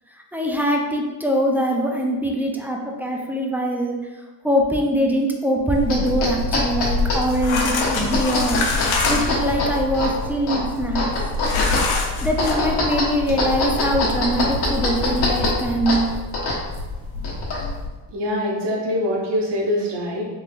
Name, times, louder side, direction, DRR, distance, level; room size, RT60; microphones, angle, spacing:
voice 1, 0.3-4.0 4.4-8.6 9.1-11.1 12.2-16.1, right 1 dB, 5° right, 0 dB, 0.4 m, -22 dB
sound 1, 5.7-17.9, left 2 dB, 60° left, 1.3 m, -24 dB
sound 2, 7.2-9.4 11.4-12.5, left 3 dB, 80° left, 0.8 m, -25 dB
voice 2, 18.1-20.2, left 1 dB, 65° right, -2 dB, 1.0 m, -23 dB
3.7 x 3.1 x 2.4 m, 1.2 s
cardioid pair, 75°, 46 cm